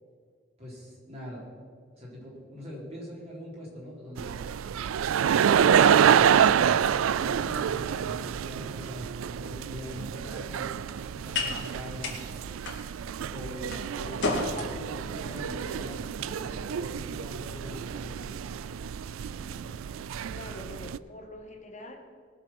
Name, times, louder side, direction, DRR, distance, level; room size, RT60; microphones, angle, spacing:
voice 1, 0.6-1.5 1.9-4.7 5.3-9.1 9.4-10.8 11.1-12.2 13.3-14.2 14.7-18.3, left 1 dB, 30° right, -5 dB, 4.4 m, -42 dB
Crowd Laughing, 4.2-21.0, right 8 dB, 85° right, 0.4 m, -27 dB
sound 1, 9.8-18.2, left 3 dB, 60° left, 2.3 m, -37 dB
sound 2, 15.3-16.2 17.1-20.8, left 1 dB, 20° left, 0.9 m, -51 dB
voice 2, 20.3-22.0, left 1 dB, 35° left, 2 dB, 1.8 m, -44 dB
19.5 x 6.8 x 6.0 m, 2.1 s
head